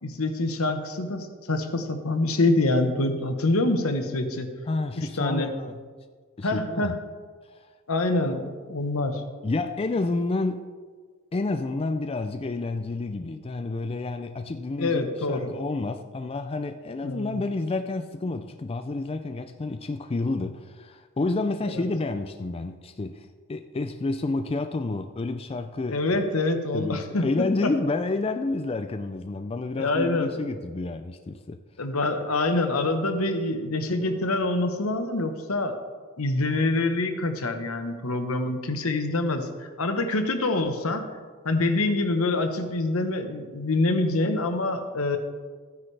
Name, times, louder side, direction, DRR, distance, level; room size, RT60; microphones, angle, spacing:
voice 1, 0.0-4.5 5.0-5.5 6.4-7.0 7.9-9.2 14.8-15.5 17.0-17.4 21.7-21.8 25.9-27.7 29.8-30.3 31.8-35.8 36.2-41.1 41.4-45.2, left 2 dB, 80° left, 6 dB, 1.1 m, -26 dB
voice 2, 4.7-5.8 6.4-6.9 7.6-7.7 9.4-10.7 11.3-26.0 26.7-31.6, left 3 dB, 25° left, 8 dB, 0.4 m, -29 dB
14.0 x 9.8 x 3.3 m, 1.5 s
head